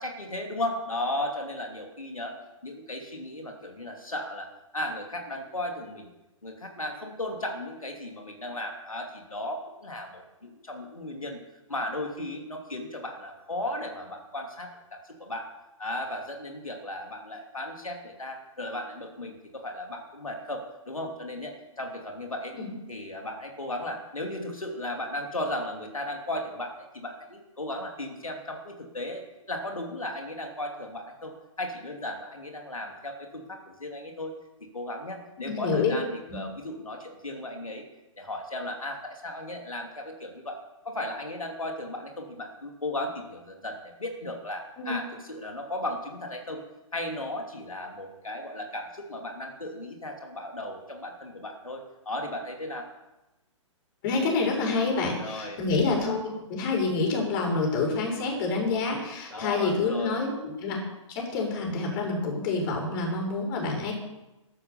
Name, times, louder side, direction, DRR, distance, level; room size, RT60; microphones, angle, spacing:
voice 1, 0.0-2.3 2.6-4.5 4.7-6.1 6.4-11.4 11.7-15.5 15.8-22.5 22.9-31.3 31.6-34.3 34.7-37.8 38.2-40.6 40.8-46.6 46.9-52.9 55.2-55.6 59.3-60.2, left 1 dB, 90° left, 2 dB, 2.9 m, -35 dB
voice 2, 35.5-35.9 36.3-36.4 44.8-44.9 54.0-60.8 61.1-63.9, left 3 dB, 40° left, 1 dB, 6.4 m, -27 dB
13.5 x 12.0 x 7.0 m, 1.0 s
figure-of-eight pair, 120°, 17 cm